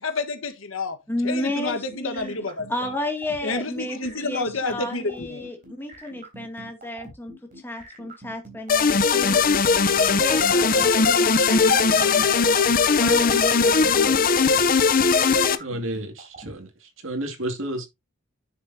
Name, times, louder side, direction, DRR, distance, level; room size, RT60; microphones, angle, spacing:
voice 1, 0.0-1.0 1.2-2.7 3.4-5.5, left 3 dB, 80° left, 1.5 m, -29 dB
voice 2, 1.1-2.3 2.7-9.4 10.2-12.2 13.0-14.1, left 1 dB, 10° left, 2.2 m, -32 dB
sound 1, 1.7-16.5, right 2 dB, 40° right, 3.9 m, -44 dB
sound 2, 8.7-15.6, left 5 dB, 45° left, 0.7 m, -19 dB
voice 3, 15.6-16.7 17.0-17.9, right 1 dB, 75° right, 2.3 m, -31 dB
9.8 x 6.8 x 2.8 m
head